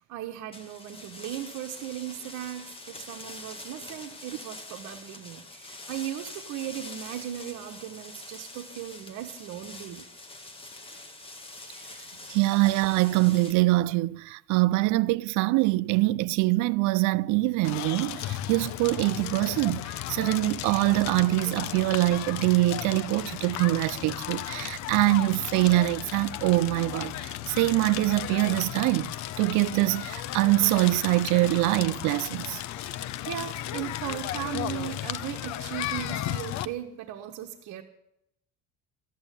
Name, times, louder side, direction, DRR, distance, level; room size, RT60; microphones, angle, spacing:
voice 1, 0.0-10.1 32.8-37.8, right 12 dB, 70° right, 1.3 m, -37 dB
sound 1, 0.5-13.5, left 2 dB, 20° left, 1.8 m, -45 dB
voice 2, 12.3-29.1 29.4-32.6, right 19 dB, 85° right, 0.5 m, -24 dB
Crackle, 17.6-36.7, left 13 dB, 70° left, 0.8 m, -35 dB
13.5 x 9.0 x 9.9 m
cardioid pair, 155°, 29 cm